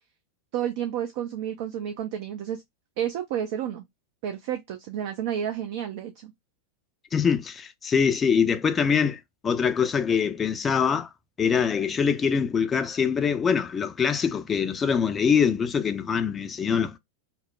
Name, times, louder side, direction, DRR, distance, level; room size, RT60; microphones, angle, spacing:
voice 1, 0.5-2.6 3.0-3.8 4.2-6.3, right 9 dB, 50° right, 0.4 m, -31 dB
voice 2, 7.1-11.1 11.4-17.0, left 6 dB, 20° left, 0.4 m, -24 dB
3.0 x 2.0 x 2.2 m
figure-of-eight pair, 90°, 0 cm